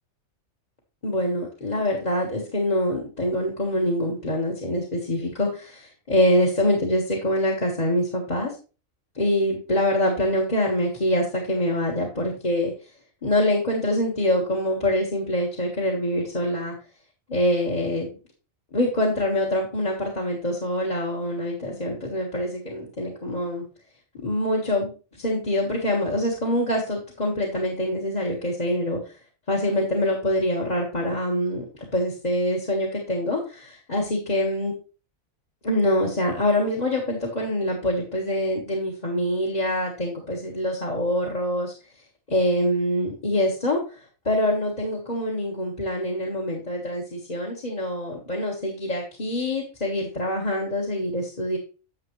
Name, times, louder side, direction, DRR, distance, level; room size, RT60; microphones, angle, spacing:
voice 1, 1.0-8.5 9.1-12.7 13.2-16.7 17.3-18.1 18.7-23.6 24.2-24.9 25.2-29.2 29.5-31.6 31.9-34.7 35.6-41.7 42.3-44.0 44.2-51.6, left 1 dB, 30° left, -2 dB, 1.6 m, -25 dB
9.6 x 6.8 x 3.1 m, 0.34 s
omnidirectional pair, 1.4 m